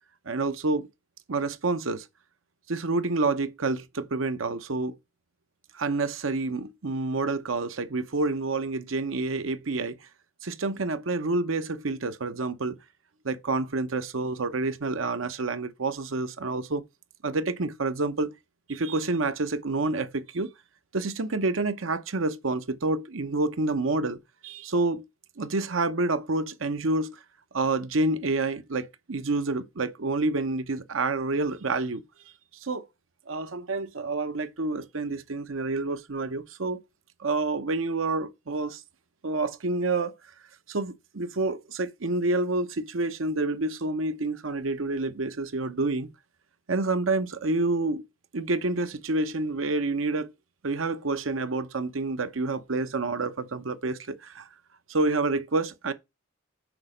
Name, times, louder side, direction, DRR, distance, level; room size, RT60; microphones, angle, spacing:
voice 1, 0.3-0.9 1.3-2.1 2.7-4.9 5.7-10.0 10.4-12.8 13.2-16.8 17.2-18.3 18.7-20.5 20.9-24.2 24.4-25.0 25.4-27.2 27.5-32.0 32.6-32.9 33.3-36.8 37.2-38.8 39.2-40.1 40.7-46.1 46.7-48.0 48.3-50.3 50.6-54.5 54.9-55.9, right 3 dB, 85° right, 0.9 m, -28 dB
6.3 x 5.0 x 5.0 m
head